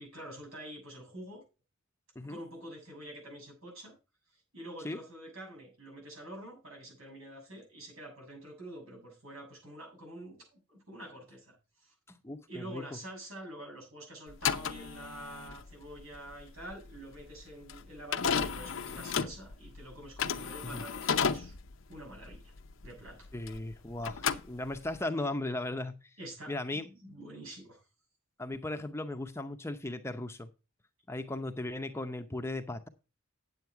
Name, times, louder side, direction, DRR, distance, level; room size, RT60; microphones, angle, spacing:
voice 1, 0.0-1.4 2.2-3.9 4.5-11.9 12.5-21.6 21.9-22.5 22.8-23.3 26.2-27.8, right 1 dB, 80° right, 0 dB, 7.1 m, -47 dB
voice 2, 12.1-13.0 20.6-20.8 23.3-26.0 26.5-26.8 28.4-30.5 31.1-32.9, left 2 dB, 10° left, 7 dB, 0.7 m, -37 dB
sound 1, 14.3-23.7 24.0-25.0, left 6 dB, 65° left, 0.6 m, -34 dB
9.5 x 7.9 x 4.6 m, 0.30 s
head